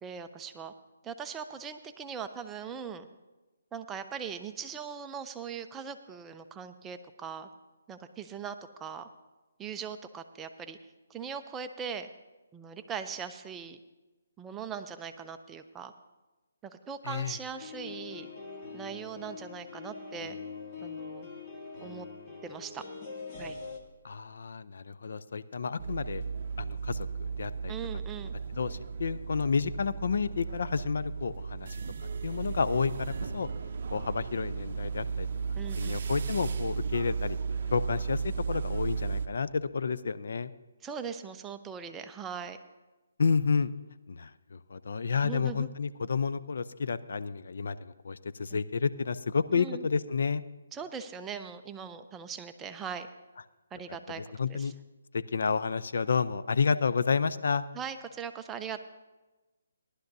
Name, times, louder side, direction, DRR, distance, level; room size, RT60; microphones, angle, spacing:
voice 1, 0.0-0.7 1.0-3.1 3.7-7.5 7.9-9.1 9.6-10.8 11.1-12.1 12.5-13.8 14.4-15.9 16.6-18.3 18.7-20.4 20.8-21.3 21.8-22.1 22.4-22.8 23.4-23.6 25.8-25.9 27.7-28.3 35.6-36.0 40.8-42.6 45.2-45.7 48.5-48.6 49.5-49.9 50.7-53.1 53.7-54.2 54.5-54.7 57.7-58.8, right 7 dB, 10° right, 7 dB, 0.5 m, -40 dB
voice 2, 17.0-17.4 24.0-26.2 26.6-27.7 28.5-31.8 32.2-33.5 33.9-35.3 35.8-37.4 37.7-40.5 43.2-43.7 44.1-50.4 54.2-54.7 55.1-57.6, left 5 dB, 65° left, 14 dB, 0.5 m, -30 dB
sound 1, 17.5-23.8, left 4 dB, 25° left, 1.4 m, -43 dB
sound 2, 25.8-39.3, right 5 dB, 50° right, 0.7 m, -35 dB
18.0 x 11.5 x 2.7 m, 1.1 s
hypercardioid pair, 160°, 0 cm